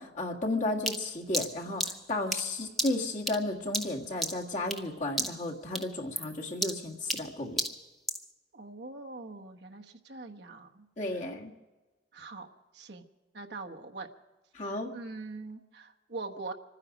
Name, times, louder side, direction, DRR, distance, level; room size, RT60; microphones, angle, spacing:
voice 1, 0.0-7.6 11.0-11.5 14.5-14.9, left 2 dB, 45° left, 0 dB, 1.9 m, -33 dB
sound 1, 0.9-4.9 5.2-5.5 5.7-8.3, equal, ahead, 0.9 m, -34 dB
voice 2, 8.5-10.8 11.1-11.2 12.1-12.5 12.7-13.0 13.3-14.1 14.6-16.5, right 3 dB, 70° right, 3 dB, 1.3 m, -43 dB
26.0 x 9.9 x 5.2 m, 1.2 s
head